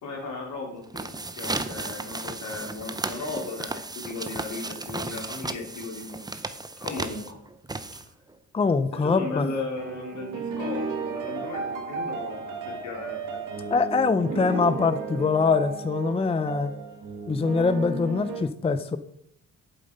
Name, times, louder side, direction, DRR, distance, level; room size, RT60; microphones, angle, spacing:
voice 1, 0.0-6.2 6.8-7.4 7.9-8.0 9.0-13.2, left 3 dB, 70° left, 0 dB, 3.2 m, -36 dB
sound 1, 0.8-8.3, right 2 dB, 15° right, 0.7 m, -35 dB
voice 2, 8.5-9.5 13.7-16.7 17.3-19.0, left 4 dB, 20° left, 11 dB, 0.5 m, -23 dB
sound 2, 9.8-18.4, right 4 dB, 85° right, 1.7 m, -34 dB
7.9 x 7.7 x 5.3 m, 0.72 s
cardioid pair, 90°, 30 cm